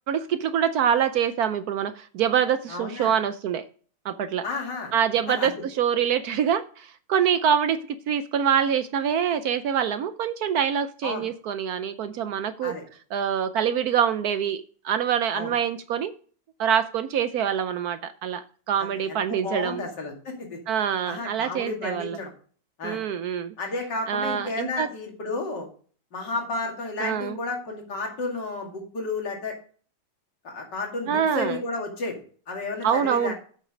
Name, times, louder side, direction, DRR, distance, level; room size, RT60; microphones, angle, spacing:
voice 1, 0.1-3.6 4.0-4.4 4.9-12.8 13.1-16.1 16.6-19.8 20.7-22.2 22.8-23.5 24.1-24.9 27.0-27.4 31.1-31.6 32.8-33.3, right 8 dB, 70° right, 12 dB, 1.0 m, -25 dB
voice 2, 2.7-3.1 4.4-4.9 5.3-5.5 11.0-11.3 12.6-12.8 15.3-15.5 18.8-20.6 21.0-22.3 22.8-23.0 23.6-25.7 26.1-29.6 30.4-33.3, left 3 dB, 70° left, 1 dB, 2.9 m, -32 dB
8.2 x 7.2 x 4.9 m, 0.43 s
omnidirectional pair, 1.9 m